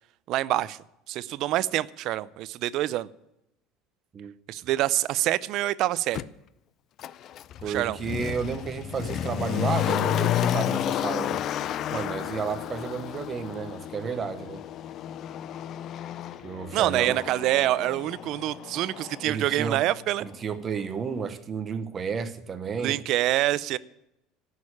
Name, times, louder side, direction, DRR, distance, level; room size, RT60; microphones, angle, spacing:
voice 1, 0.3-0.8 1.1-3.1 4.5-6.2 7.6-8.0 16.7-20.3 22.8-23.8, right 15 dB, 50° right, 19 dB, 0.5 m, -26 dB
Motor vehicle (road), 6.1-6.3 7.0-19.9 20.2-20.3, left 11 dB, 40° left, 0.4 m, -31 dB
voice 2, 7.6-11.4 11.9-14.6 16.4-17.2 19.2-19.8 20.2-23.0, right 6 dB, 25° right, 11 dB, 0.8 m, -32 dB
14.0 x 6.6 x 9.8 m, 0.86 s
cardioid pair, 160°, 0 cm